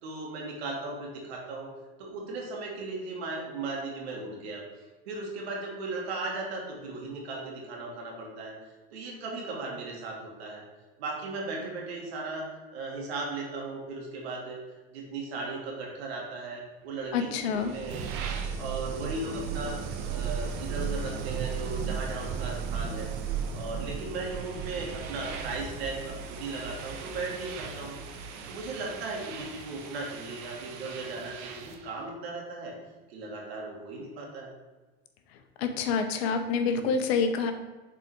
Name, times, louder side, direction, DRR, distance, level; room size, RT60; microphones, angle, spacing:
voice 1, 0.0-1.7 2.0-4.6 5.1-8.5 8.9-10.6 11.0-14.6 14.9-18.1 18.6-19.8 20.1-23.1 23.5-28.0 28.5-32.8 33.1-34.5 36.7-36.9, right 3 dB, 80° right, -1 dB, 1.9 m, -37 dB
voice 2, 17.1-17.7 35.6-37.5, left 5 dB, 80° left, 7 dB, 0.9 m, -27 dB
sound 1, 17.3-31.9, right 6 dB, 65° right, 1.0 m, -36 dB
7.0 x 4.1 x 4.5 m, 1.2 s
hypercardioid pair, 80°, 31 cm